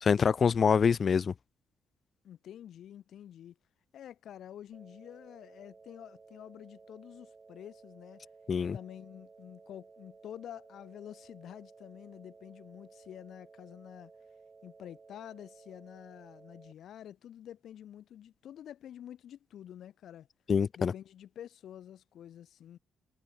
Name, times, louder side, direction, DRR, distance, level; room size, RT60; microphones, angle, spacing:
voice 1, 0.0-1.3 8.5-8.8 20.5-20.9, left 6 dB, 45° left, 0.4 m, -25 dB
voice 2, 2.2-3.6 3.9-8.2 8.7-14.1 14.6-20.3 20.8-22.8, left 10 dB, 70° left, 2.0 m, -48 dB
sound 1, 4.7-16.7, right 4 dB, 30° right, 3.7 m, -56 dB
cardioid pair, 90°, 0 cm